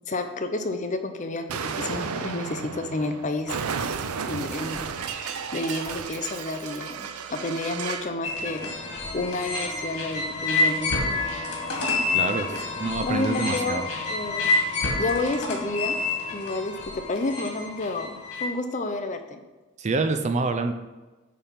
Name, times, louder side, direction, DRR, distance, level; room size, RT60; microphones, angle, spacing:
voice 1, 0.1-3.6 4.3-8.7 9.1-11.0 13.0-13.8 14.1-14.5 15.0-16.0 16.3-19.4, left 2 dB, 35° left, 7 dB, 0.6 m, -30 dB
Explosion, 1.5-8.2, right 6 dB, 85° right, 0.5 m, -33 dB
sound 1, 8.2-18.5, left 3 dB, 90° left, 2.1 m, -28 dB
voice 2, 12.1-13.9 19.8-20.7, right 3 dB, 30° right, 7 dB, 0.4 m, -27 dB
8.6 x 3.5 x 5.7 m, 1.2 s
head